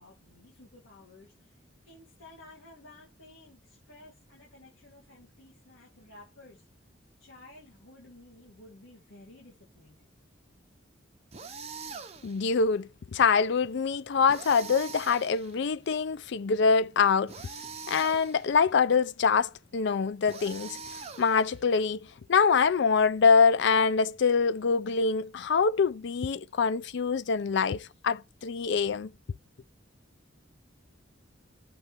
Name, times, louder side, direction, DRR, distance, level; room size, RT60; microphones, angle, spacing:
voice 1, 0.0-6.6 7.2-10.1, left 2 dB, 80° left, 2.1 m, -54 dB
sound 1, 11.3-12.5 14.3-15.7 17.3-18.6 20.2-21.7, right 5 dB, 35° right, 0.9 m, -43 dB
voice 2, 12.2-17.3 17.9-20.8 21.2-29.1, left 5 dB, 65° left, 0.4 m, -25 dB
5.9 x 3.2 x 5.1 m
head